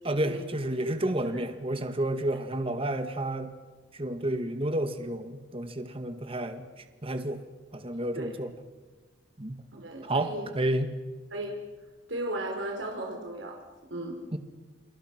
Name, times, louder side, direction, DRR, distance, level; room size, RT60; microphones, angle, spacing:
voice 1, 0.0-3.5 3.9-7.4 7.7-8.5 9.4-9.6 10.0-10.9 14.3-14.4, right 1 dB, 30° right, 8 dB, 1.9 m, -31 dB
voice 2, 9.7-10.5 11.3-11.6 12.1-13.6 13.9-14.2, right 1 dB, 75° right, 2 dB, 4.2 m, -35 dB
30.0 x 28.0 x 6.1 m, 1.3 s
head